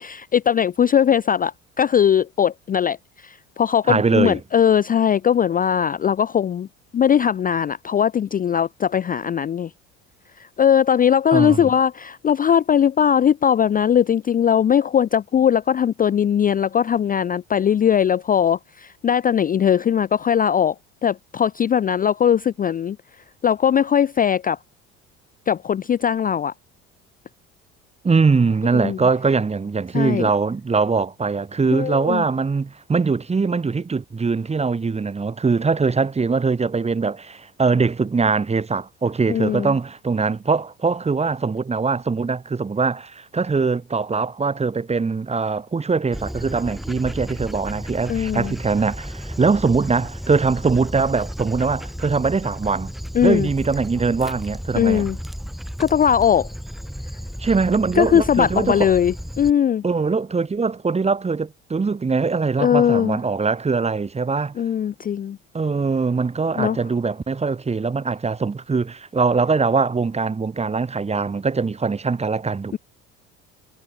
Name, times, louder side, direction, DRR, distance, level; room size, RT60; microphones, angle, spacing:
voice 1, 0.0-6.7 6.9-9.7 10.4-20.8 21.0-23.0 23.4-24.6 25.5-26.5 28.7-29.0 29.9-30.3 31.7-32.2 39.3-39.7 48.1-48.6 53.1-53.5 54.8-55.2 55.8-56.5 57.9-59.8 62.6-63.2 64.6-65.4 66.6-66.8 72.7-72.8, left 8 dB, 25° left, 0.5 m, -19 dB
voice 2, 3.9-4.4 11.3-11.7 28.0-52.9 53.2-55.1 57.4-58.9 59.8-64.5 65.5-72.8, right 4 dB, 20° right, 1.1 m, -22 dB
Dog, 46.1-59.5, equal, ahead, 1.2 m, -33 dB
hypercardioid pair, 65°, 36 cm